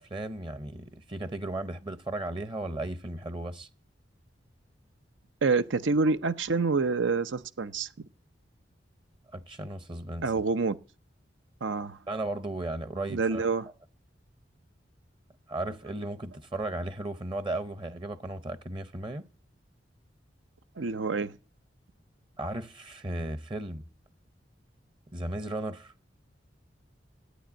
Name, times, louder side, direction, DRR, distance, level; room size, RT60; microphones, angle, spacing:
voice 1, 0.0-3.7 9.3-10.3 12.1-13.4 15.5-19.2 22.4-23.8 25.1-25.9, right 2 dB, 25° right, 0.7 m, -35 dB
voice 2, 5.4-7.9 10.2-10.8 11.6-12.0 13.1-13.7 20.8-21.3, right 4 dB, 85° right, 0.7 m, -27 dB
13.0 x 9.2 x 8.7 m
head